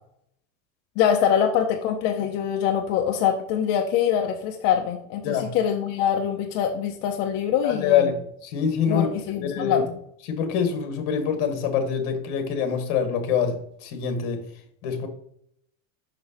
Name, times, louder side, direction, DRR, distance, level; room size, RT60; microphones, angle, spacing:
voice 1, 1.0-8.1 8.9-9.9, left 8 dB, 35° left, 0.5 m, -24 dB
voice 2, 7.6-9.1 9.5-9.8 10.3-14.4 14.8-15.1, left 7 dB, 55° left, 1.4 m, -25 dB
5.9 x 5.6 x 2.8 m
supercardioid pair, 165°, 42 cm